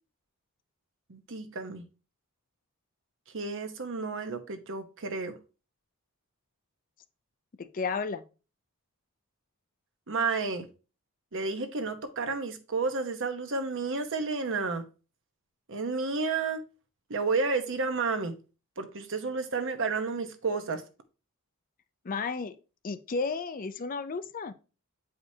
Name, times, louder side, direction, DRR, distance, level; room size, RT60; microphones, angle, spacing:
voice 1, 1.1-1.8 3.3-5.4 10.1-10.7 11.3-14.8 15.7-16.6 17.1-18.4 18.8-20.8, right 4 dB, 60° right, 0.9 m, -31 dB
voice 2, 7.6-8.2 22.0-22.6 22.8-24.5, left 4 dB, 40° left, 0.5 m, -33 dB
8.3 x 4.9 x 2.8 m
head